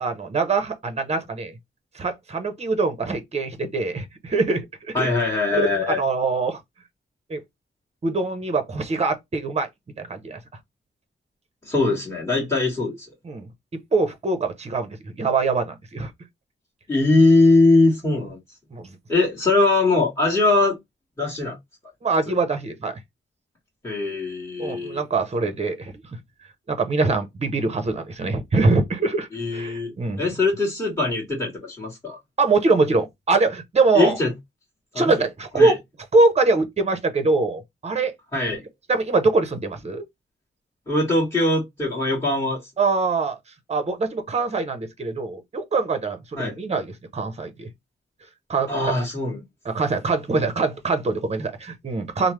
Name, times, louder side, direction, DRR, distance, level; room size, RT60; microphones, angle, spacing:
voice 1, 0.0-1.5 1.9-5.1 5.5-6.6 7.3-7.4 8.0-9.7 10.0-10.4 13.2-13.5 13.9-16.1 18.7-19.0 22.0-22.9 24.6-26.2 26.7-30.3 32.4-34.2 35.0-35.8 36.1-38.1 38.9-40.0 42.8-43.4 43.7-47.7 48.5-49.0 49.6-52.3, right 3 dB, 30° right, 0.7 m, -23 dB
voice 2, 4.9-6.0 11.6-13.1 16.9-18.4 19.1-20.8 21.2-21.6 22.3-22.4 23.8-25.0 29.3-32.2 33.9-34.3 34.9-35.1 35.5-35.7 38.3-38.6 40.9-42.6 46.4-46.5 48.7-49.4, left 2 dB, 15° left, 1.5 m, -21 dB
3.1 x 2.0 x 3.1 m
wide cardioid pair, 115°, 20 cm